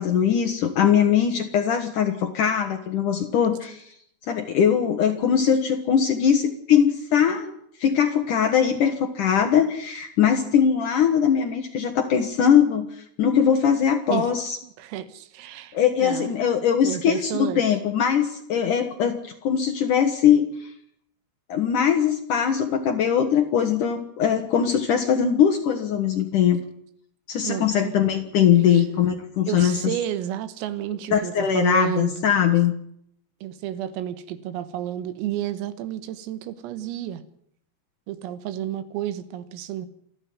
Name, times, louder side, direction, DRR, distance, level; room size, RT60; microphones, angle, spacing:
voice 1, 0.0-3.9 4.3-7.5 7.8-14.6 15.7-20.7 21.5-26.6 27.3-29.8 31.1-32.7, left 8 dB, 75° left, 4 dB, 1.8 m, -21 dB
voice 2, 14.8-16.3 16.8-17.6 27.4-27.9 28.7-28.8 29.5-32.3 33.4-37.2 38.1-39.9, right 11 dB, 80° right, 13 dB, 4.0 m, -31 dB
27.5 x 11.0 x 9.6 m, 0.70 s
omnidirectional pair, 5.9 m